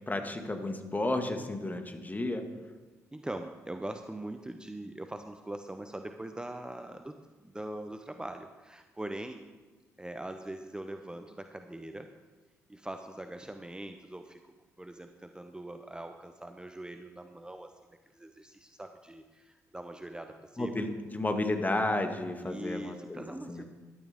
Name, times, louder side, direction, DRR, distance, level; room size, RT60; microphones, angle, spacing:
voice 1, 0.1-2.4 20.6-23.2 23.5-23.6, left 2 dB, 20° left, 5 dB, 1.9 m, -32 dB
voice 2, 3.1-7.1 7.4-9.4 10.0-12.1 12.7-17.7 18.1-20.7 22.4-23.6, right 1 dB, 10° right, 7 dB, 0.9 m, -42 dB
14.0 x 12.0 x 3.7 m, 1.2 s
figure-of-eight pair, 40°, 8 cm